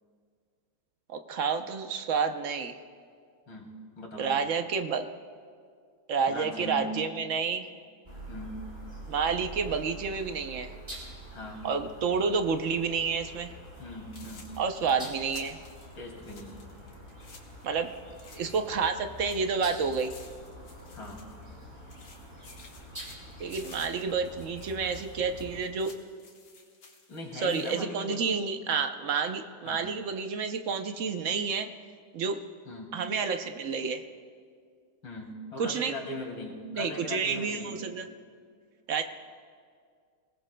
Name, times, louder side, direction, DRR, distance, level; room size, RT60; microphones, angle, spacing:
voice 1, 1.1-2.7 4.2-5.1 6.1-7.7 9.1-10.7 11.6-13.5 14.6-15.6 17.6-17.9 18.3-20.1 23.4-25.9 27.3-31.7 32.1-32.4 32.9-34.0 35.6-35.9 36.7-38.0 38.9-39.0, right 5 dB, 60° right, 7 dB, 0.8 m, -29 dB
voice 2, 3.5-4.4 6.3-6.9 8.3-8.6 11.3-11.7 13.8-14.5 15.9-16.6 20.9-21.2 27.1-28.2 29.6-29.9 32.7-32.9 35.0-37.7, left 1 dB, 85° left, 0 dB, 3.2 m, -40 dB
sound 1, 8.1-25.7, equal, 25° right, 3.8 m, -46 dB
sound 2, 13.7-13.8 14.1-18.9 19.2-21.6 21.9-27.8, left 4 dB, 65° left, 2.2 m, -54 dB
27.5 x 19.0 x 2.2 m, 2.1 s
omnidirectional pair, 2.0 m